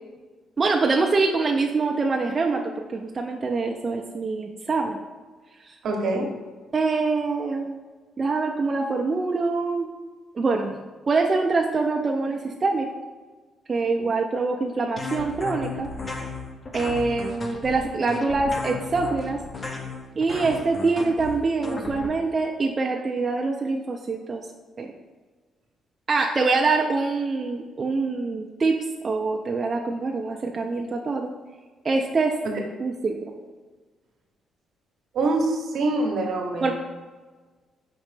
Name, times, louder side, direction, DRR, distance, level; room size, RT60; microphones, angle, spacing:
voice 1, 0.6-2.6 2.9-5.0 5.6-5.7 6.7-7.8 8.2-9.9 10.3-10.8 11.1-12.9 13.7-15.9 16.7-19.4 20.2-24.4 24.8-24.9 26.1-31.3 31.8-32.4 32.8-33.4 36.6-36.7, right 3 dB, 35° right, 0 dB, 0.4 m, -24 dB
voice 2, 5.8-6.3 16.8-16.9 32.4-32.6 35.1-36.7, right 2 dB, 70° right, 1 dB, 0.8 m, -25 dB
sound 1, 15.0-22.1, left 3 dB, 30° left, 0.6 m, -34 dB
5.1 x 3.1 x 3.2 m, 1.4 s
cardioid pair, 90°, 0 cm